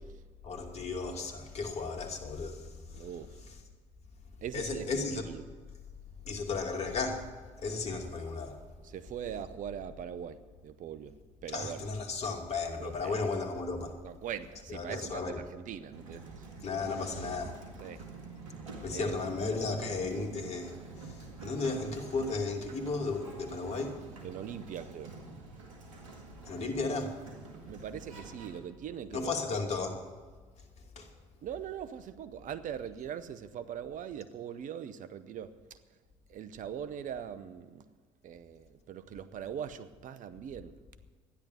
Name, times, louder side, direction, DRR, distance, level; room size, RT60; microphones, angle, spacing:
voice 1, 0.4-3.1 4.5-5.2 6.3-7.3 7.6-8.6 11.5-14.0 14.7-15.4 16.6-17.6 18.8-24.0 26.5-27.2 29.1-30.0 31.0-31.1, left 3 dB, 40° left, 2.6 m, -34 dB
voice 2, 2.9-3.4 4.4-5.4 8.8-11.2 11.4-11.9 12.8-13.2 14.0-16.5 17.8-18.0 18.9-19.2 24.2-25.2 27.6-29.6 31.4-35.5 36.3-37.9 38.2-40.8, right 9 dB, 55° right, 0.9 m, -41 dB
Sliding door, 15.9-28.6, right 4 dB, 85° right, 1.9 m, -47 dB
13.0 x 10.5 x 8.0 m
hypercardioid pair, 60°, 16 cm